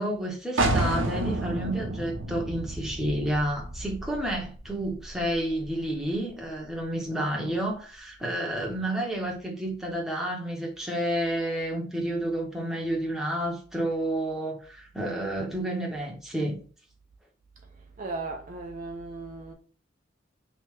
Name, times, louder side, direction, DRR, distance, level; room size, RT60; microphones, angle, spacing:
voice 1, 0.0-16.6, right 1 dB, ahead, 0.8 m, -30 dB
sound 1, 0.6-6.1, right 2 dB, 75° right, 0.7 m, -31 dB
voice 2, 18.0-19.5, right 3 dB, 40° right, 0.4 m, -36 dB
3.3 x 2.8 x 3.1 m
head